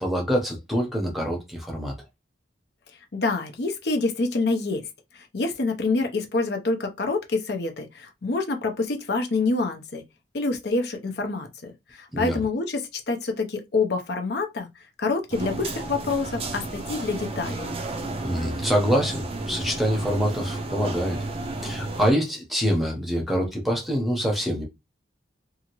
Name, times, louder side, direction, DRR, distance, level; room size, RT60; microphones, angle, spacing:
voice 1, 0.0-1.9 12.1-12.4 18.2-21.2 21.6-24.6, equal, ahead, 0.8 m, -25 dB
voice 2, 3.1-4.8 5.1-10.0 10.3-14.7 15.0-17.7, left 3 dB, 55° left, 0.6 m, -27 dB
sound 1, 15.3-22.1, right 2 dB, 30° right, 0.4 m, -32 dB
2.8 x 2.4 x 2.9 m
head